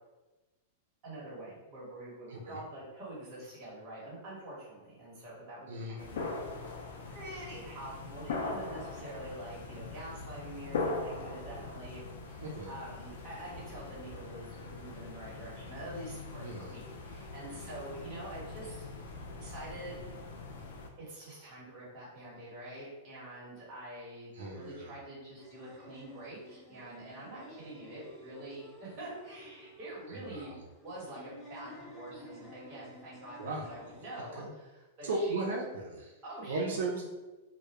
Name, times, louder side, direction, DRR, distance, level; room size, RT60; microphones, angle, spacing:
voice 1, 1.0-6.2 6.6-6.7 7.1-18.9 19.4-19.9 21.0-35.4 36.2-36.8, right 1 dB, 30° right, -8 dB, 1.1 m, -46 dB
sound 1, 6.0-20.9, left 3 dB, 80° left, 0.4 m, -41 dB
voice 2, 12.4-12.7 16.4-16.7 24.3-24.9 30.1-30.6 33.4-33.9 34.4-34.5 35.0-36.1 36.5-37.0, right 2 dB, 85° right, -1 dB, 0.4 m, -36 dB
sound 2, 25.4-34.5, equal, ahead, 0.8 m, -53 dB
2.2 x 2.0 x 2.9 m, 1.1 s
supercardioid pair, 160°, 0 cm